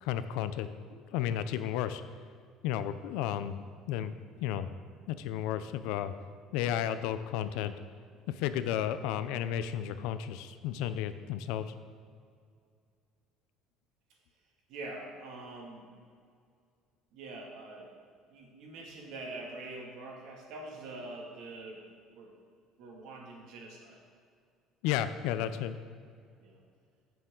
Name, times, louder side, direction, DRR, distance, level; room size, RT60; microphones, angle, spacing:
voice 1, 0.0-2.0 2.6-3.6 3.9-4.1 4.4-4.7 5.1-6.1 6.5-7.7 8.3-11.7 24.8-25.8, left 10 dB, 80° left, 12 dB, 0.6 m, -33 dB
voice 2, 14.7-15.9 17.1-17.9 18.3-21.8 22.2-22.3 22.8-24.0 26.4-26.6, right 2 dB, 60° right, -1 dB, 2.3 m, -44 dB
14.5 x 6.9 x 3.9 m, 2.2 s
cardioid pair, 160°, 0 cm